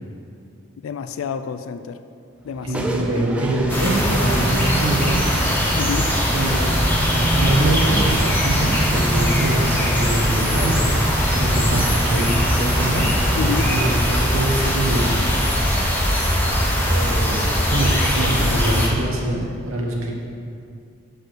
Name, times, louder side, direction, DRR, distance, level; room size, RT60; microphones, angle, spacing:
voice 1, 0.8-2.0 2.4-2.9 5.7-6.1 13.3-13.7, left 6 dB, 85° left, 10 dB, 0.3 m, -28 dB
sound 1, 2.5-19.2, right 1 dB, 5° right, 0.4 m, -30 dB
voice 2, 2.6-5.2 6.3-10.8 11.3-15.2 16.9-20.1, right 1 dB, 85° right, -1 dB, 1.3 m, -24 dB
sound 2, 3.7-18.9, equal, 10° left, 0.8 m, -20 dB
6.6 x 5.1 x 6.2 m, 2.4 s
head